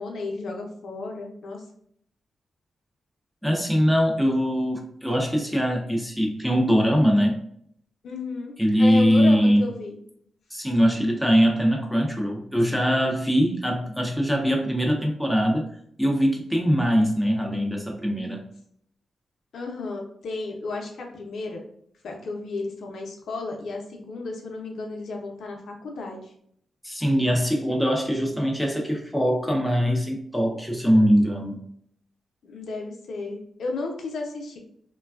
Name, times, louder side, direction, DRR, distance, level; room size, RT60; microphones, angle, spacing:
voice 1, 0.0-1.6 8.0-8.5 8.8-10.0 19.5-21.7 22.0-26.2 32.4-34.6, left 3 dB, 65° left, 1 dB, 0.6 m, -33 dB
voice 2, 3.4-7.4 8.6-9.7 10.5-15.7 16.0-18.4 26.8-31.6, equal, ahead, 0 dB, 0.4 m, -22 dB
3.2 x 2.2 x 2.2 m, 0.68 s
wide cardioid pair, 165°, 0 cm